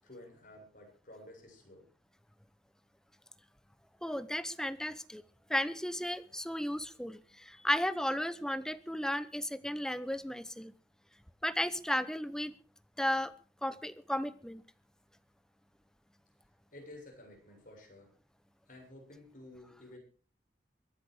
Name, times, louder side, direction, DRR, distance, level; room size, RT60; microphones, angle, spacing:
voice 1, 0.0-1.9 16.7-18.1 18.7-20.0, left 1 dB, 50° left, 1 dB, 7.4 m, -52 dB
voice 2, 4.0-5.2 5.5-10.7 11.4-12.5 13.0-13.3 13.6-14.6, left 1 dB, 5° left, 14 dB, 0.8 m, -34 dB
23.0 x 10.5 x 4.9 m, 0.38 s
head